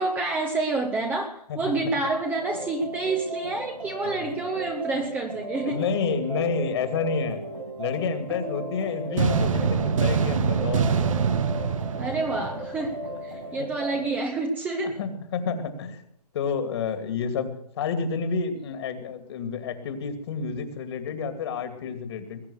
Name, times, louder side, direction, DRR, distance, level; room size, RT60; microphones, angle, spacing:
voice 1, 0.0-5.8 11.9-15.0, right 3 dB, 10° right, 3 dB, 1.1 m, -28 dB
voice 2, 1.5-2.1 4.2-4.3 5.6-7.4 7.8-11.2 13.5-13.7 14.8-16.0 16.3-22.4, left 5 dB, 40° left, 9 dB, 2.5 m, -29 dB
sound 1, 2.3-14.2, right 1 dB, 90° right, 7.3 m, -36 dB
sound 2, 9.2-13.1, right 6 dB, 55° right, 1.5 m, -25 dB
20.5 x 8.9 x 6.4 m, 0.72 s
hypercardioid pair, 145°, 20 cm